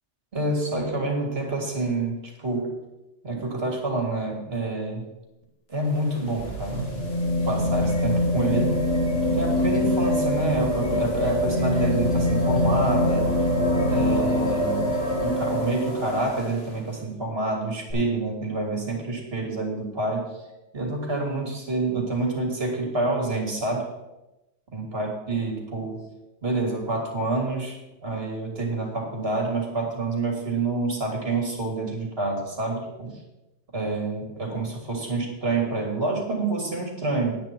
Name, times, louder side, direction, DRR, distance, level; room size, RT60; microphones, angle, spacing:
voice 1, 0.3-2.8 3.2-5.1 5.7-6.8 7.4-8.8 9.3-13.4 13.9-20.2 20.7-23.9 24.7-26.0 26.4-33.1 33.7-37.4, right 2 dB, 55° right, 1 dB, 3.0 m, -27 dB
sound 1, 5.7-16.7 17.9-18.0, left 1 dB, 60° left, 2.4 m, -24 dB
9.8 x 9.4 x 4.6 m, 0.97 s
omnidirectional pair, 1.2 m